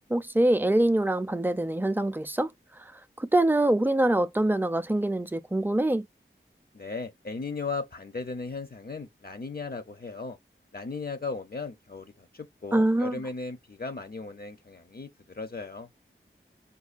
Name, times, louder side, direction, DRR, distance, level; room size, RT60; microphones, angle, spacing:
voice 1, 0.1-2.5 3.2-6.0 12.7-13.2, right 1 dB, 10° right, 0.4 m, -24 dB
voice 2, 6.7-10.4 10.7-15.9, left 4 dB, 50° left, 0.6 m, -36 dB
5.3 x 2.2 x 2.4 m
wide cardioid pair, 45°, 21 cm